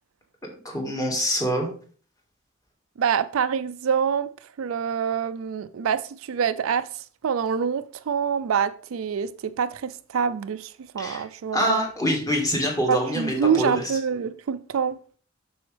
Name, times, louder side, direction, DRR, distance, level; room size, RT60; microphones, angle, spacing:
voice 1, 0.6-1.7 11.0-11.2 11.5-13.8, equal, 15° left, 1.7 m, -25 dB
voice 2, 3.0-4.3 4.6-11.9 12.9-15.0, right 7 dB, 75° right, 0.4 m, -26 dB
7.8 x 6.1 x 3.3 m
head